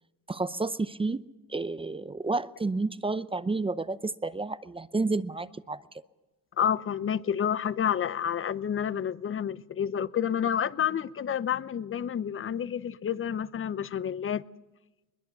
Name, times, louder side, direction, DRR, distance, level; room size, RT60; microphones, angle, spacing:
voice 1, 0.3-1.2 1.5-5.8, right 3 dB, 15° right, 0.7 m, -30 dB
voice 2, 6.6-14.4, left 8 dB, 35° left, 0.8 m, -29 dB
22.0 x 21.5 x 6.9 m
cardioid pair, 105°, 37 cm